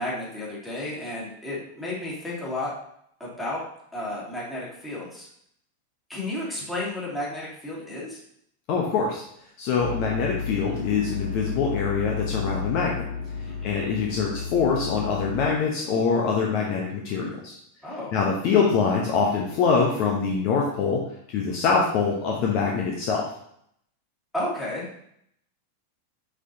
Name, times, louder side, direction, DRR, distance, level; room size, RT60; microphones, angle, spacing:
voice 1, 0.0-2.7 3.2-3.6 3.9-5.3 6.1-8.2 13.5-13.8 17.8-18.1 24.3-24.9, left 1 dB, 5° left, -7 dB, 2.5 m, -32 dB
voice 2, 8.7-9.2 9.6-13.0 13.6-17.6 18.1-21.0 21.3-23.2, left 5 dB, 40° left, -1 dB, 0.9 m, -24 dB
sound 1, 9.8-15.5, left 5 dB, 80° left, 1.9 m, -32 dB
6.0 x 5.8 x 2.8 m, 0.70 s
figure-of-eight pair, 90°, 0 cm